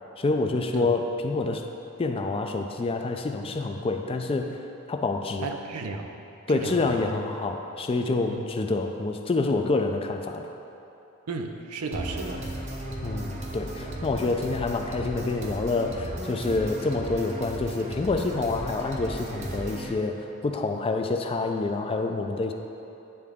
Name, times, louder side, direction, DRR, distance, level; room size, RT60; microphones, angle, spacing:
voice 1, 0.2-1.6 2.0-5.5 6.5-10.5 13.0-22.5, left 3 dB, 25° left, 4 dB, 0.3 m, -27 dB
voice 2, 5.4-6.2 6.5-7.0 8.3-8.5 11.3-12.4, right 3 dB, 80° right, 4 dB, 0.5 m, -34 dB
sound 1, 11.9-19.9, right 1 dB, 30° right, 0.6 m, -35 dB
10.0 x 3.7 x 3.6 m, 2.9 s
head